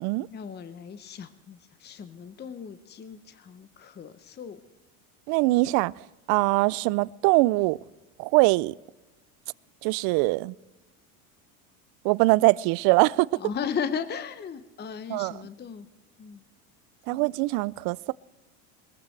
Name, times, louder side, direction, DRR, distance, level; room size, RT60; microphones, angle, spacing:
voice 1, 0.3-4.6 13.4-15.9 16.2-16.4 17.1-17.2, left 7 dB, 25° left, 0.9 m, -36 dB
voice 2, 5.3-5.9 6.3-7.8 8.2-8.7 9.8-10.5 12.0-13.4 15.1-15.4 17.1-18.1, right 23 dB, 60° right, 0.5 m, -22 dB
21.5 x 14.5 x 3.3 m
supercardioid pair, 100°, 43 cm